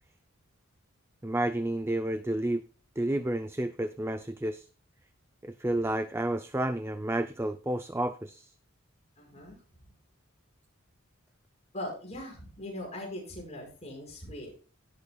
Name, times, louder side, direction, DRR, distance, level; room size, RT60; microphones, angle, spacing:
voice 1, 1.2-2.6 3.0-4.7 5.4-8.5, right 1 dB, 10° right, 10 dB, 0.5 m, -30 dB
voice 2, 9.2-9.6 11.7-14.5, left 1 dB, 30° left, -1 dB, 5.6 m, -40 dB
17.5 x 8.1 x 2.3 m, 0.38 s
head